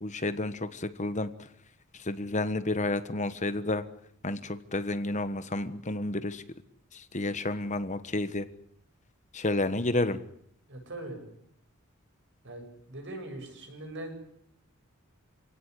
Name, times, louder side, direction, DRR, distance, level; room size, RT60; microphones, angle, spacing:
voice 1, 0.0-1.3 2.1-3.8 4.2-6.4 7.1-8.4 9.3-10.2, left 2 dB, 35° left, 11 dB, 1.3 m, -30 dB
voice 2, 10.7-11.2 12.4-14.2, right 1 dB, 55° right, 4 dB, 8.0 m, -41 dB
28.5 x 17.5 x 9.9 m, 0.70 s
head